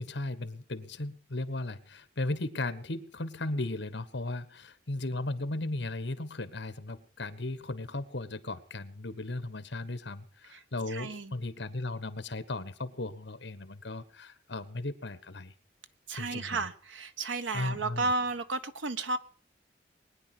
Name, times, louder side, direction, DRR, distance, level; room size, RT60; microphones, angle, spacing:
voice 1, 0.0-15.5 16.1-16.7 17.5-18.1, left 2 dB, 70° left, 13 dB, 1.4 m, -36 dB
voice 2, 10.9-11.3 16.1-19.2, right 3 dB, 90° right, 10 dB, 1.2 m, -33 dB
21.0 x 9.9 x 6.0 m, 0.41 s
head